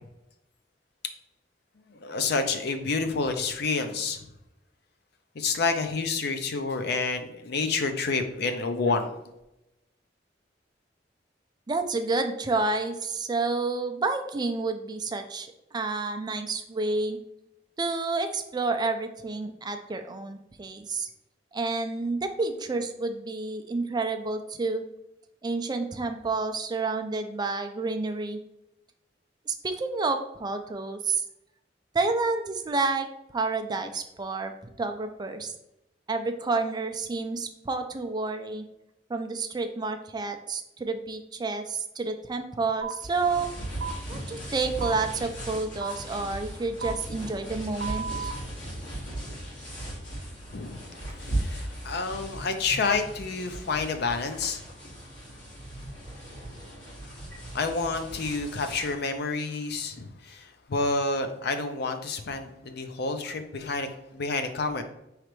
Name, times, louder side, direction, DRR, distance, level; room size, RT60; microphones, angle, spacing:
voice 1, 2.0-4.2 5.4-9.2 50.5-50.8 51.1-54.6 57.5-64.8, left 4 dB, 65° left, 7 dB, 0.5 m, -29 dB
voice 2, 11.7-17.2 17.8-21.1 21.5-24.8 25.4-28.4 29.5-31.2 31.9-34.5 34.8-35.5 36.1-38.7 39.1-43.5 44.1-48.3, right 3 dB, 25° right, 6 dB, 0.4 m, -29 dB
sound 1, 42.8-42.9 43.8-43.9 44.8-44.9 45.8-45.9 46.8-46.9 47.8-48.3, right 6 dB, 90° right, 0.5 m, -33 dB
sound 2, 43.0-59.0, right 1 dB, 85° left, 1.6 m, -38 dB
4.9 x 3.2 x 3.1 m, 0.87 s
head